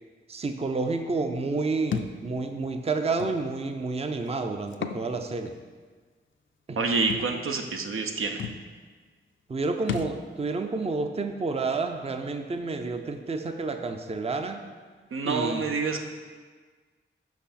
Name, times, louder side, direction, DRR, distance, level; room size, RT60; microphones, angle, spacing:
voice 1, 0.3-5.5 6.7-6.8 9.5-14.6 15.2-15.7, right 3 dB, 30° right, 6 dB, 0.5 m, -30 dB
Thump thud, 1.9-2.2 3.2-3.3 4.7-5.0 5.5-5.6 7.1-7.3 8.1-8.2 8.4-8.6 9.9-10.2, left 7 dB, 65° left, 0.4 m, -32 dB
voice 2, 6.8-8.5 15.1-16.0, right 4 dB, 75° right, 4 dB, 0.6 m, -27 dB
5.8 x 5.7 x 4.2 m, 1.5 s
cardioid pair, 50°, 21 cm